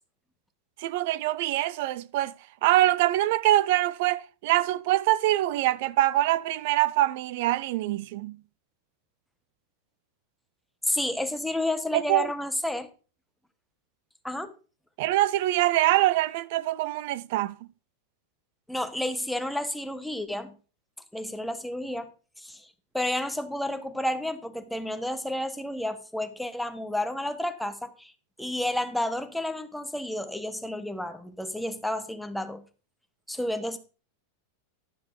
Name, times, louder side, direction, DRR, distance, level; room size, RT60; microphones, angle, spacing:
voice 1, 0.8-2.3 2.6-8.4 11.9-12.3 15.0-17.6, right 15 dB, 60° right, 0.4 m, -24 dB
voice 2, 10.9-12.9 14.2-14.5 18.7-20.5 21.1-22.1 22.4-22.6 22.9-28.1 28.4-32.6 33.3-33.8, left 1 dB, ahead, 0.8 m, -31 dB
10.5 x 6.4 x 3.8 m
supercardioid pair, 145°, 0 cm